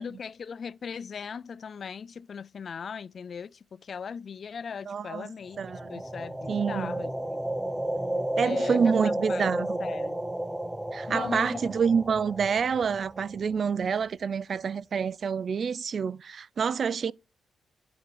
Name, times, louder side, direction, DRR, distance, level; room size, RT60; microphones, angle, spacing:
voice 1, 0.0-5.6 5.9-7.4 8.4-10.2 11.1-11.6, left 6 dB, 55° left, 0.3 m, -38 dB
voice 2, 4.9-5.3 5.6-6.0 6.5-6.9 8.4-9.8 10.9-17.1, right 6 dB, 60° right, 0.3 m, -27 dB
sound 1, 5.5-13.6, right 1 dB, 10° right, 0.6 m, -32 dB
8.2 x 4.5 x 4.9 m
cardioid pair, 70°, 0 cm